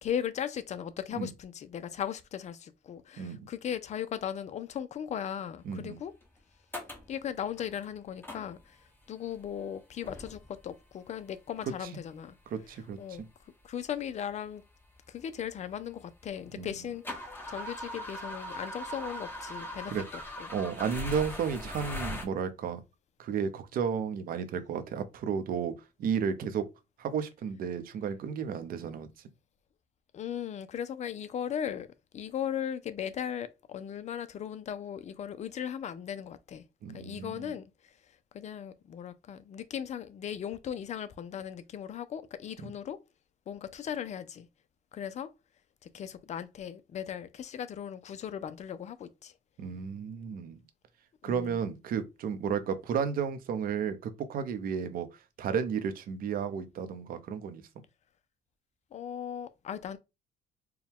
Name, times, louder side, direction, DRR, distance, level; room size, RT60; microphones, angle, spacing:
voice 1, 0.0-6.1 7.1-8.8 9.1-12.4 13.0-13.2 13.6-14.6 15.1-17.0 17.5-19.9 30.1-31.9 32.1-36.6 36.9-37.6 38.3-43.0 43.5-44.5 44.9-45.3 45.8-49.3 51.2-51.6 58.9-60.0, left 9 dB, 45° left, 0.5 m, -37 dB
voice 2, 3.2-3.5 5.6-6.0 11.8-11.9 12.5-13.3 16.5-16.7 19.9-20.0 20.5-22.8 23.2-25.7 26.0-26.7 27.0-29.1 36.8-37.5 42.6-42.7 49.6-50.6 51.2-55.1 55.4-57.6, right 7 dB, 60° right, 0.8 m, -33 dB
sound 1, 6.2-6.3 6.7-7.1 7.6-7.8 8.2-8.8 9.3-9.6 10.0-10.7 11.6-11.7 12.6-12.7 13.1-13.2 13.9-14.0 14.3-16.2 16.5-22.2, left 1 dB, 10° left, 1.2 m, -40 dB
4.5 x 2.3 x 3.5 m
cardioid pair, 110°, 17 cm